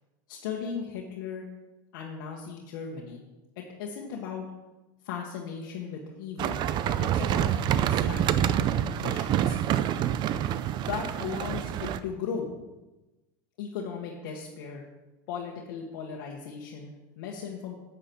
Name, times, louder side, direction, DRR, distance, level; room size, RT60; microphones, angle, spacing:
voice 1, 0.3-1.4 1.9-3.2 3.5-4.5 5.0-9.6 10.8-12.5 13.6-14.8 15.3-17.8, left 6 dB, 75° left, -2 dB, 1.4 m, -37 dB
sound 1, 6.4-12.0, right 10 dB, 45° right, 0.5 m, -27 dB
9.0 x 8.4 x 4.6 m, 1.1 s
supercardioid pair, 115°, 11 cm